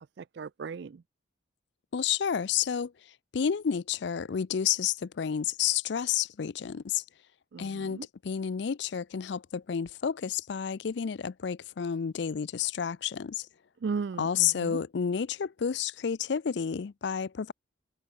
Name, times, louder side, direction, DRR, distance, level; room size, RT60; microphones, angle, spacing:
voice 1, 0.2-1.0 7.5-8.1 13.8-14.8, right 5 dB, 60° right, 0.4 m, -36 dB
voice 2, 1.9-2.9 3.3-7.0 7.6-13.5 14.2-17.5, left 8 dB, 60° left, 0.4 m, -30 dB
head